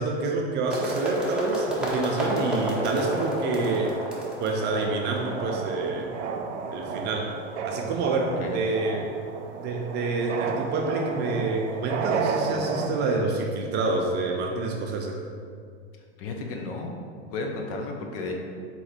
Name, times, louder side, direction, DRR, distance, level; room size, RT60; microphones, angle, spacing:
voice 1, 0.0-4.0 4.4-6.1 6.7-7.3 7.6-9.1 9.6-15.2, right 3 dB, 30° right, 1 dB, 0.5 m, -27 dB
sound 1, 0.7-6.6, equal, ahead, 0.8 m, -31 dB
sound 2, 4.6-12.9, right 5 dB, 90° right, 0.6 m, -32 dB
voice 2, 16.2-16.9 17.3-18.4, left 3 dB, 55° left, 2 dB, 0.8 m, -33 dB
3.9 x 3.0 x 4.3 m, 2.1 s
hypercardioid pair, 115°, 35 cm